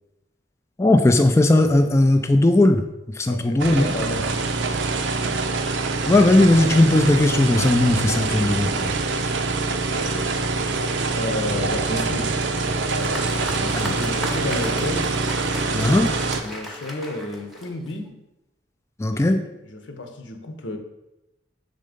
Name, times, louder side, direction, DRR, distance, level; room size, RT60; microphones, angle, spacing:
voice 1, 0.8-2.8 3.2-3.8 6.1-8.9 13.7-13.9 15.7-16.1 19.0-19.4, left 2 dB, 15° left, 5 dB, 0.3 m, -17 dB
voice 2, 3.2-4.3 5.2-5.4 9.9-10.3 10.7-10.8 11.1-12.4 12.9-15.2 16.4-18.1 19.1-20.8, left 2 dB, 85° left, 5 dB, 0.9 m, -32 dB
sound 1, 3.6-16.4, right 3 dB, 75° right, 0.6 m, -25 dB
Applause, 12.5-18.1, equal, ahead, 0.8 m, -36 dB
6.6 x 3.7 x 5.1 m, 0.94 s
head